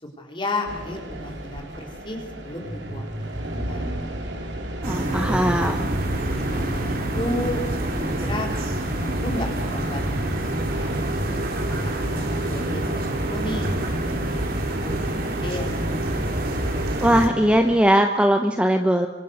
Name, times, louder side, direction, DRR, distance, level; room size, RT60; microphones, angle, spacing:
voice 1, 0.0-3.9 5.0-5.3 6.1-7.6 8.2-10.9 11.8-15.7, left 1 dB, 30° left, 2 dB, 4.3 m, -34 dB
sound 1, 0.7-17.8, right 1 dB, 85° right, 3.9 m, -34 dB
voice 2, 4.8-5.9 17.0-19.1, equal, 5° right, 5 dB, 1.1 m, -19 dB
sound 2, 4.8-17.3, right 1 dB, 55° right, 3.6 m, -27 dB
25.5 x 25.0 x 6.7 m, 1.1 s
head